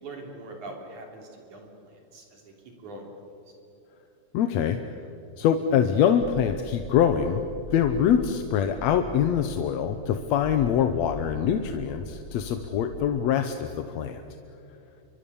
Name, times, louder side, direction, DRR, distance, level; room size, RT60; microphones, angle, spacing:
voice 1, 0.0-3.1, right 2 dB, 70° right, 2 dB, 4.6 m, -43 dB
voice 2, 4.3-4.8 5.4-7.4 7.7-14.2, left 8 dB, 70° left, 7 dB, 2.0 m, -24 dB
sound 1, 6.2-13.0, left 2 dB, 30° left, 3.0 m, -41 dB
29.0 x 24.5 x 7.1 m, 2.7 s
omnidirectional pair, 3.6 m